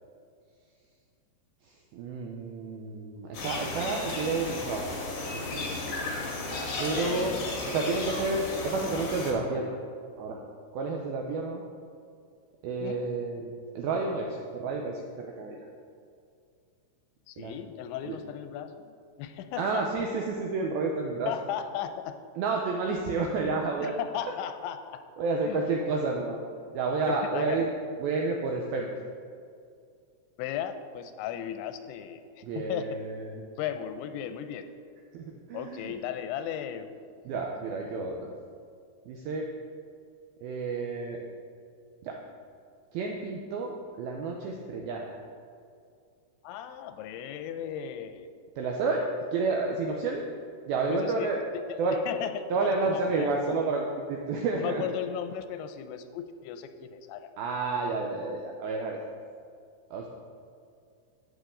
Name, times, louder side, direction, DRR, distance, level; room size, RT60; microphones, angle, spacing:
voice 1, 1.7-4.9 5.3-5.7 6.8-7.3 7.7-9.8 10.2-10.4 10.7-11.6 12.6-15.6 17.4-17.5 18.0-18.2 19.6-21.3 22.4-24.0 25.2-26.4 26.7-27.7 28.0-28.9 32.4-33.5 35.1-36.0 37.3-38.2 39.1-39.5 40.4-41.2 42.0-42.2 42.9-45.2 48.6-50.3 50.7-51.4 51.8-52.0 52.5-54.8 57.4-59.0 59.9-60.1, right 3 dB, 85° right, 1 dB, 2.1 m, -30 dB
sound 1, 3.3-9.3, left 2 dB, 70° left, 1.4 m, -34 dB
voice 2, 6.9-7.9 12.8-13.0 17.3-19.8 21.3-22.1 23.8-25.0 25.5-25.6 27.1-27.7 30.4-32.2 32.5-32.9 33.6-34.7 35.5-36.9 46.4-48.3 50.9-51.3 51.7-53.3 54.6-57.3, left 9 dB, 85° left, 9 dB, 2.9 m, -36 dB
12.0 x 8.5 x 3.8 m, 2.3 s
omnidirectional pair, 5.2 m